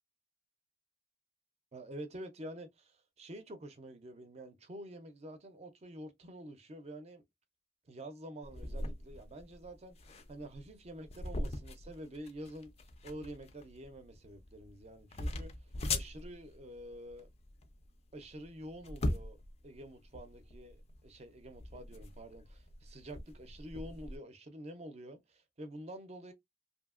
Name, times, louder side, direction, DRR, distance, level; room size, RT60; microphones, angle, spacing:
voice 1, 1.7-7.2 7.9-12.7 13.0-17.3 18.1-19.4 19.6-26.3, right 1 dB, 35° right, 0.5 m, -48 dB
sound 1, 8.4-24.2, left 2 dB, 30° left, 0.4 m, -41 dB
2.7 x 2.6 x 2.4 m
head